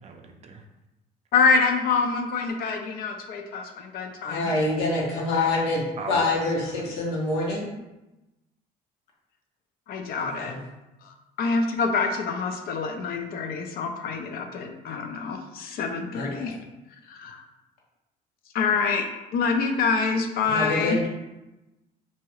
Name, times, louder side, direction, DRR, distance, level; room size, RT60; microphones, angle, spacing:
voice 1, 0.0-0.6 6.0-6.8, right 4 dB, 40° right, 4 dB, 0.4 m, -39 dB
voice 2, 1.3-4.5 9.9-10.5 11.0-16.6 17.1-17.4 18.5-19.1 19.3-21.0, left 4 dB, 65° left, 5 dB, 0.4 m, -26 dB
voice 3, 4.2-7.7 10.4-10.6 16.1-16.5 20.4-21.1, left 2 dB, 85° left, -4 dB, 1.0 m, -26 dB
2.8 x 2.3 x 3.0 m, 0.98 s
cardioid pair, 110°, 17 cm